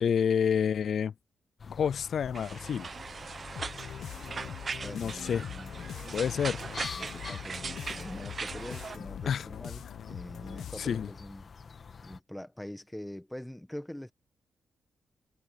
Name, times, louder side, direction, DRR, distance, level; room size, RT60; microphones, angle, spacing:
voice 1, 0.0-1.1 1.7-2.9 4.9-5.4 6.1-6.7 9.3-9.5 10.8-11.1, left 7 dB, 60° left, 0.4 m, -28 dB
sound 1, 1.6-12.2, left 5 dB, 45° left, 1.7 m, -46 dB
sound 2, 2.3-9.0, right 5 dB, 40° right, 0.8 m, -40 dB
sound 3, 3.6-11.2, left 10 dB, 80° left, 1.1 m, -43 dB
voice 2, 4.7-5.8 7.0-11.5 12.0-14.1, left 1 dB, 5° left, 1.4 m, -44 dB
cardioid pair, 120°, 0 cm